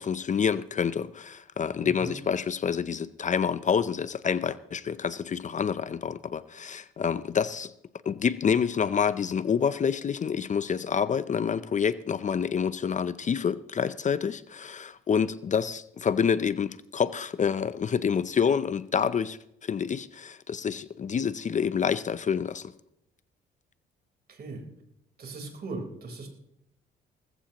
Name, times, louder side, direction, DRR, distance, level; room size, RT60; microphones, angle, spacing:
voice 1, 0.0-7.7 8.1-22.7, left 7 dB, 40° left, 0.6 m, -28 dB
voice 2, 1.8-2.1 24.3-24.6 25.2-26.3, right 3 dB, 50° right, 4.1 m, -38 dB
19.5 x 14.5 x 3.0 m
cardioid pair, 90°, 20 cm